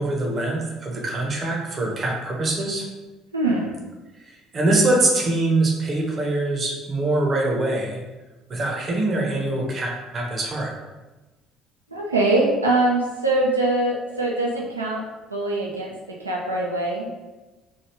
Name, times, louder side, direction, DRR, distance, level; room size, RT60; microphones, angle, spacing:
voice 1, 0.0-2.8 4.5-8.0 8.5-10.7, right 2 dB, 35° right, -1 dB, 0.7 m, -23 dB
voice 2, 3.3-3.7 11.9-15.0 15.3-15.9 16.2-17.1, right 2 dB, 85° right, -2 dB, 0.3 m, -22 dB
3.1 x 2.3 x 3.2 m, 1.1 s
figure-of-eight pair, 55°, 0 cm